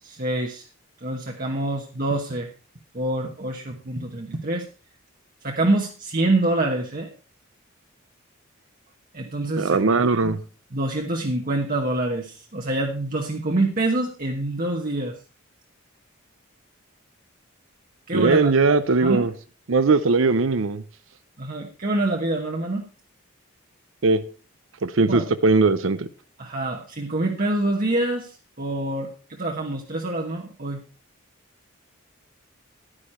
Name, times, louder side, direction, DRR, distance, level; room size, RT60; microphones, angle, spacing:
voice 1, 0.0-0.7 1.0-2.5 2.9-4.7 5.4-7.1 9.1-9.8 10.2-10.3 10.7-15.1 18.1-19.3 21.4-22.8 25.1-25.3 26.4-30.8, right 2 dB, 40° right, 1.1 m, -26 dB
voice 2, 9.6-10.4 18.1-19.3 19.7-20.8 24.0-24.2 24.8-26.1, right 3 dB, 70° right, 0.6 m, -19 dB
10.5 x 9.9 x 4.3 m
head